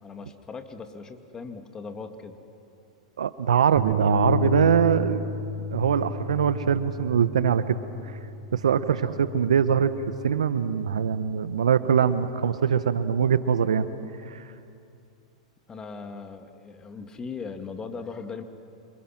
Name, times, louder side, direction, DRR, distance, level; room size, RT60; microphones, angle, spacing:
voice 1, 0.0-2.4 15.7-18.4, left 5 dB, 20° left, 6 dB, 2.2 m, -39 dB
voice 2, 3.2-5.2 5.7-7.8 8.5-9.9 10.2-13.8 14.3-14.4, right 8 dB, 85° right, 12 dB, 1.1 m, -22 dB
Bass guitar, 3.8-10.0, left 1 dB, 60° right, 6.2 m, -31 dB
28.0 x 27.0 x 6.1 m, 2.6 s
hypercardioid pair, 110°, 3 cm